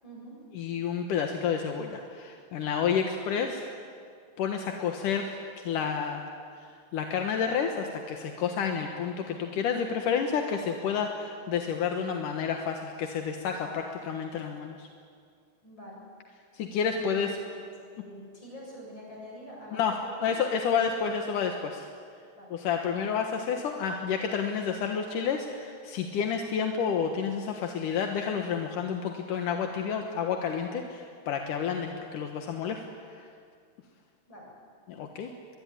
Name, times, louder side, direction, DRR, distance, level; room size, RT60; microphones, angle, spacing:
voice 1, 0.0-0.4 13.6-13.8 15.6-16.0 16.9-17.6 17.9-20.8 22.4-22.6 34.3-34.5, equal, 25° left, -2 dB, 8.2 m, -46 dB
voice 2, 0.5-3.7 4.4-6.3 6.6-14.9 16.5-17.3 19.7-20.0 20.2-21.9 22.5-32.8 33.1-33.3 34.9-35.3, left 7 dB, 65° left, 4 dB, 2.2 m, -30 dB
23.0 x 22.5 x 9.9 m, 2.2 s
omnidirectional pair, 5.3 m